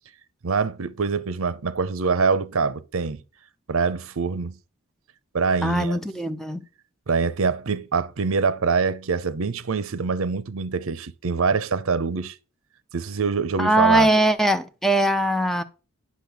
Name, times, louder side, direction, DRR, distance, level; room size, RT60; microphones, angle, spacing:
voice 1, 0.4-3.2 3.7-4.6 5.3-6.0 7.1-12.4 12.9-14.1, right 5 dB, 75° right, 0.7 m, -24 dB
voice 2, 5.6-6.6 13.6-15.6, right 1 dB, ahead, 0.6 m, -21 dB
10.0 x 4.2 x 6.9 m
head